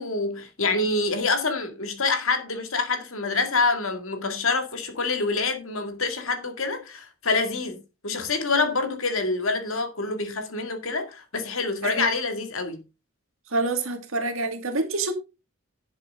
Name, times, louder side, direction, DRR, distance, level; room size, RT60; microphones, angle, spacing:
voice 1, 0.0-12.8, left 3 dB, 70° left, 2.1 m, -26 dB
voice 2, 13.5-15.1, right 2 dB, 70° right, 2.1 m, -27 dB
11.0 x 7.4 x 3.7 m
head